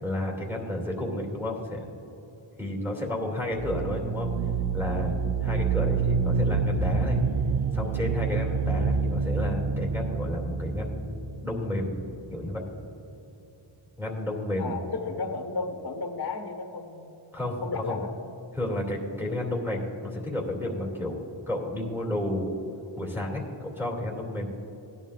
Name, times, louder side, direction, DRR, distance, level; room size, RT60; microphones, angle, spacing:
voice 1, 0.0-1.9 2.6-4.3 4.7-7.2 7.7-12.0 12.3-12.6 14.0-14.7 17.3-18.0 18.5-21.2 21.5-22.5 23.0-24.5, left 1 dB, 5° right, -2 dB, 2.5 m, -31 dB
sound 1, 3.5-12.2, right 5 dB, 60° right, 0.6 m, -27 dB
voice 2, 14.6-17.1 17.6-18.1, left 4 dB, 50° left, 3 dB, 1.6 m, -33 dB
18.5 x 11.0 x 2.5 m, 3.0 s
wide cardioid pair, 120°, 47 cm